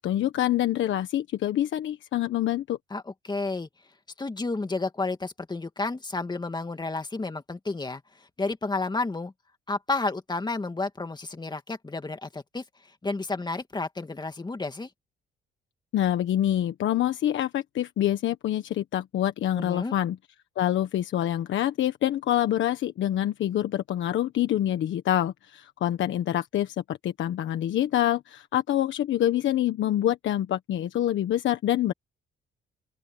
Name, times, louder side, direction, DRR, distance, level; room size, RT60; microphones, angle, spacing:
voice 1, 0.0-2.8 15.9-20.2 20.6-31.9, left 12 dB, 70° left, 1.4 m, -26 dB
voice 2, 2.9-3.7 4.2-8.0 8.4-9.3 9.7-12.6 13.0-14.9 19.6-20.0, left 3 dB, 20° left, 2.6 m, -31 dB
open air
cardioid pair, 90°, 20 cm